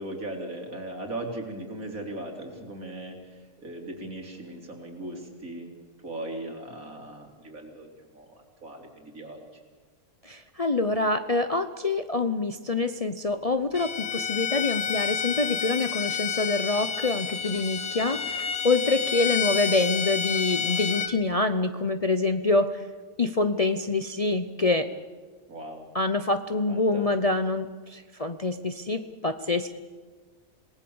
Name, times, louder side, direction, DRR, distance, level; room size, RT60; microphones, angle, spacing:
voice 1, 0.0-5.7 6.0-8.3 8.6-9.4 25.5-25.9 26.7-27.1, right 1 dB, 75° right, 2 dB, 3.7 m, -38 dB
voice 2, 10.2-22.8 23.2-24.9 25.9-29.7, left 3 dB, 35° left, 9 dB, 0.6 m, -26 dB
Bowed string instrument, 13.7-21.1, left 7 dB, 50° left, 1.2 m, -29 dB
27.0 x 19.0 x 7.1 m, 1.4 s
omnidirectional pair, 1.5 m